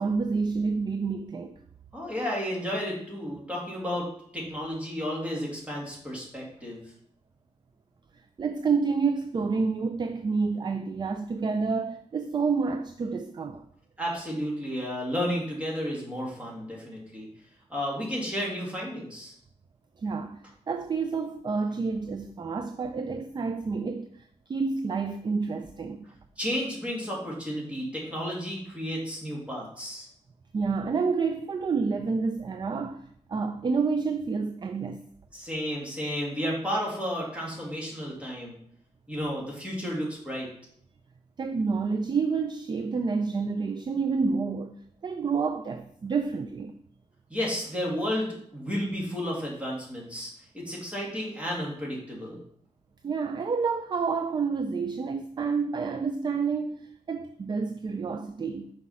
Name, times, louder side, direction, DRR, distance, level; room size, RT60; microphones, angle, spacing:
voice 1, 0.0-1.6 8.4-13.6 20.0-26.1 30.5-35.0 41.4-46.8 53.0-58.7, right 4 dB, 35° right, 0.4 m, -29 dB
voice 2, 1.9-4.1 4.3-6.8 14.0-17.3 17.7-19.3 26.4-30.1 35.3-38.6 39.1-40.5 47.3-52.4, equal, 10° right, 2.3 m, -32 dB
6.2 x 4.9 x 5.5 m
wide cardioid pair, 170°, 12 cm